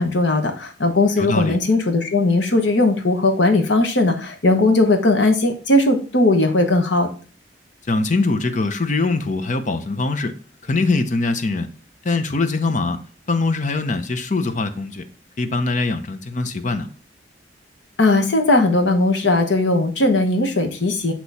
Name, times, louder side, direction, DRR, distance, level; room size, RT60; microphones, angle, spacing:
voice 1, 0.0-7.1 18.0-21.1, left 2 dB, 90° left, 6 dB, 1.0 m, -18 dB
voice 2, 1.2-1.6 7.9-10.4 10.6-11.7 12.0-13.0 13.3-15.0 15.4-16.9, left 3 dB, 45° left, 9 dB, 0.7 m, -22 dB
8.1 x 3.0 x 4.1 m, 0.40 s
head